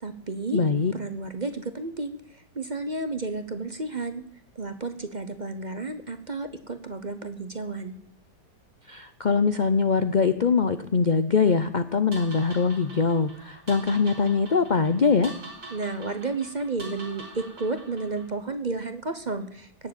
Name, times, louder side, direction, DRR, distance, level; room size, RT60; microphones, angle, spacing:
voice 1, 0.0-0.6 0.9-4.2 4.5-8.0 15.7-19.9, right 3 dB, 35° right, 10 dB, 0.9 m, -32 dB
voice 2, 0.5-0.9 8.9-15.3, left 5 dB, 60° left, 11 dB, 0.4 m, -22 dB
sound 1, 12.1-18.4, right 2 dB, 75° right, 4.2 m, -44 dB
18.0 x 7.4 x 8.9 m, 0.66 s
omnidirectional pair, 1.8 m